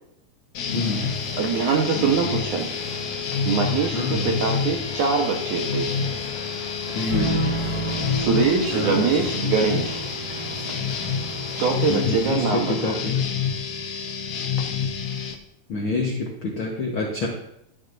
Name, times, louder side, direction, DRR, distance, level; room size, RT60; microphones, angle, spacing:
sound 1, 0.5-15.3, left 6 dB, 65° left, 2.2 m, -28 dB
voice 1, 0.7-1.1 3.9-4.3 6.9-7.4 8.7-9.1 9.3-9.4 11.9-13.2 15.7-17.3, left 3 dB, 85° left, -1 dB, 1.1 m, -27 dB
sound 2, 0.7-12.3, right 1 dB, 10° right, 2.5 m, -40 dB
voice 2, 1.4-2.7 3.5-5.9 8.2-10.0 11.6-13.0, right 5 dB, 65° right, 2 dB, 2.2 m, -23 dB
sound 3, 7.1-13.9, right 3 dB, 90° right, 6.1 m, -33 dB
13.5 x 9.6 x 2.6 m, 0.78 s
omnidirectional pair, 4.4 m